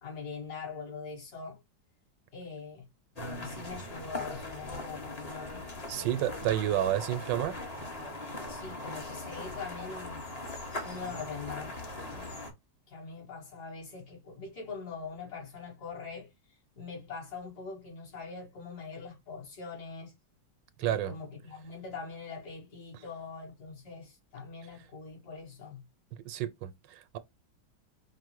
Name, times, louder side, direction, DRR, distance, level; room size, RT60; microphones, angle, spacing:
voice 1, 0.0-1.6 2.3-2.9 3.4-5.6 5.9-6.6 8.5-10.2 10.8-11.8 12.1-12.5 12.9-16.3 16.8-20.1 20.8-25.8, left 5 dB, 60° left, 2.4 m, -43 dB
sound 1, 3.2-12.5, left 2 dB, 30° left, 0.7 m, -40 dB
voice 2, 5.9-7.6 20.8-21.1 26.2-27.2, right 12 dB, 85° right, 1.3 m, -30 dB
5.1 x 2.1 x 4.5 m
omnidirectional pair, 1.9 m